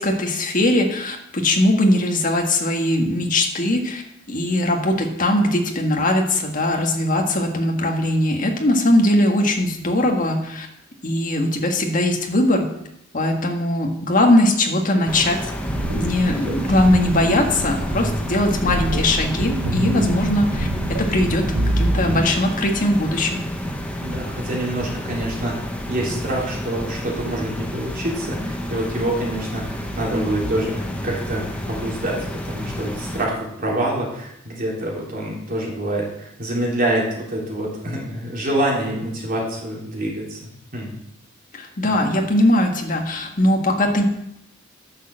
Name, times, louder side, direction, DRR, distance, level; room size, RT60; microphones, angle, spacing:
voice 1, 0.0-4.0 4.3-10.7 11.0-12.7 13.1-15.4 15.9-21.5 21.8-23.4 41.5-44.0, left 1 dB, 40° left, 2 dB, 1.7 m, -20 dB
sound 1, 15.1-33.2, equal, 5° left, 1.0 m, -30 dB
sound 2, 15.7-22.2, right 1 dB, 85° right, 1.3 m, -26 dB
voice 2, 16.1-16.6 24.0-25.6 25.9-40.9 41.8-42.0, right 1 dB, 45° right, -4 dB, 3.5 m, -26 dB
10.5 x 6.5 x 6.5 m, 0.80 s
head